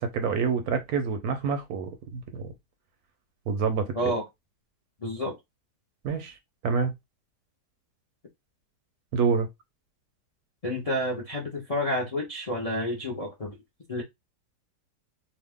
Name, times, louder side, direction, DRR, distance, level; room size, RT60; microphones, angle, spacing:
voice 1, 0.0-2.5 3.5-4.1 6.0-6.3 6.6-6.9 9.1-9.5, right 5 dB, 70° right, 1.0 m, -27 dB
voice 2, 5.0-5.3 10.6-13.5 13.9-14.0, left 1 dB, 40° left, 0.5 m, -29 dB
2.8 x 2.4 x 3.5 m
omnidirectional pair, 1.8 m